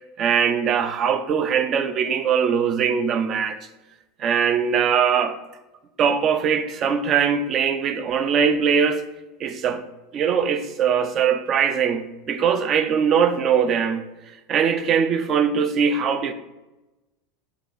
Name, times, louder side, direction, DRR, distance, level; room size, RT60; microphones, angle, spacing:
voice 1, 0.2-3.6 4.2-5.4 6.0-9.1 9.4-9.8 10.1-14.0 14.5-16.3, right 7 dB, 40° right, 0.4 m, -21 dB
5.0 x 2.3 x 3.8 m
hypercardioid pair, 85°, 0 cm